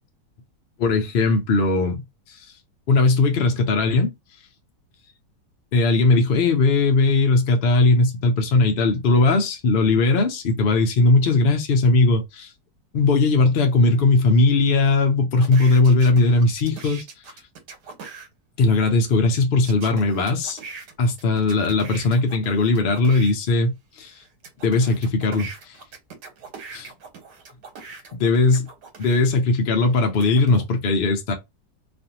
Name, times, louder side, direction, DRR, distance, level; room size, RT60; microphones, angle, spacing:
voice 1, 0.8-2.0 2.9-4.1 5.7-12.5 12.9-17.0 18.6-20.6 21.0-24.1 24.6-25.7 28.2-28.7 29.0-31.3, left 3 dB, 70° left, 0.5 m, -19 dB
sound 1, 15.4-18.3 19.6-23.3 23.9-29.2 29.8-30.6, right 5 dB, 80° right, 1.4 m, -41 dB
2.5 x 2.5 x 2.8 m
omnidirectional pair, 1.8 m